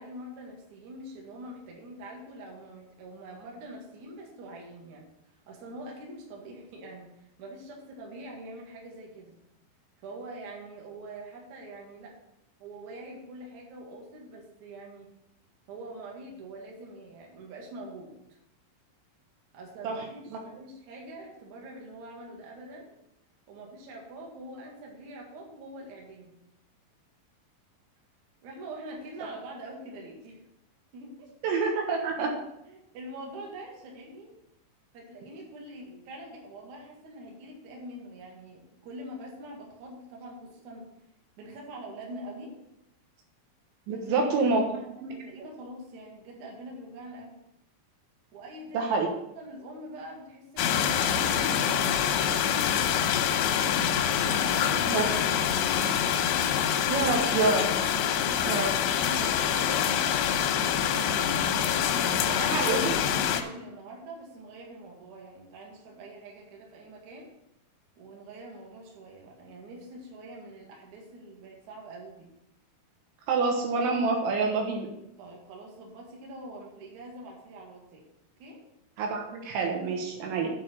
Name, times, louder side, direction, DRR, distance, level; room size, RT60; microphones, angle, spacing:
voice 1, 0.0-5.1 5.5-9.3 10.0-12.2 12.6-15.1 15.7-18.1 19.5-22.9 23.5-26.4 28.4-30.4 30.9-31.3 32.6-34.3 34.9-40.9 41.4-42.6 43.9-44.7 45.1-47.4 48.3-48.8 49.3-52.2 53.5-56.1 59.0-61.7 62.2-67.3 68.0-72.3 75.2-78.0 78.4-78.6 80.2-80.4, right 1 dB, 50° right, -1 dB, 2.4 m, -44 dB
voice 2, 31.4-32.3 43.9-44.6 45.0-45.1 48.7-49.1 54.9-55.3 56.9-57.7 58.5-58.7 62.4-62.9 73.3-74.9 79.0-80.5, right 4 dB, 75° right, 1 dB, 3.4 m, -27 dB
sound 1, 50.6-63.4, left 9 dB, 85° left, 2.8 m, -26 dB
8.2 x 4.9 x 7.5 m, 0.83 s
omnidirectional pair, 5.7 m